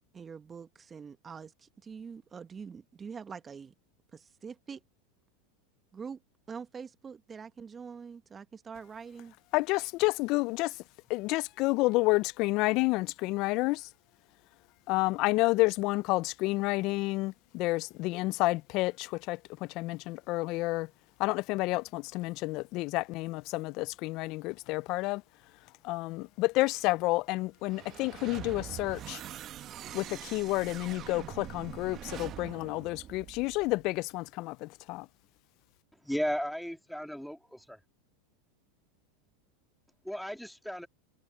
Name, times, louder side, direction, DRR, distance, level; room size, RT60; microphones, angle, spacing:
voice 1, 0.1-3.7 4.1-4.8 5.9-6.2 6.5-9.3, right 6 dB, 25° right, 1.5 m, -44 dB
voice 2, 9.5-10.7 11.1-13.9 14.9-19.4 19.7-20.9 21.2-25.2 25.8-29.2 29.9-35.1, left 22 dB, 50° left, 0.4 m, -30 dB
sound 1, 27.6-33.9, right 11 dB, 40° right, 1.1 m, -44 dB
voice 3, 36.0-37.8 40.1-40.9, equal, ahead, 2.6 m, -35 dB
hypercardioid pair, 110°, 0 cm